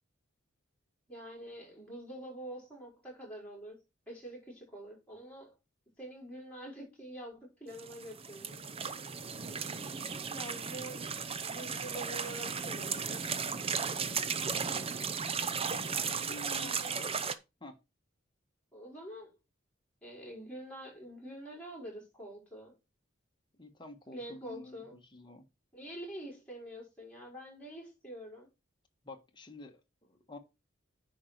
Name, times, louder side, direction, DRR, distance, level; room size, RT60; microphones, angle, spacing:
voice 1, 1.1-5.5 6.0-8.6 10.3-11.1 11.4-13.3 16.6-17.1 18.7-19.4 20.0-22.7 24.1-25.0 25.7-28.5, right 1 dB, 5° left, 5.2 m, -46 dB
sound 1, 7.7-17.3, right 6 dB, 30° right, 0.6 m, -36 dB
voice 2, 15.9-17.3 17.6-17.8 23.5-25.5 29.0-30.4, left 2 dB, 25° left, 1.5 m, -49 dB
9.9 x 5.2 x 4.5 m
head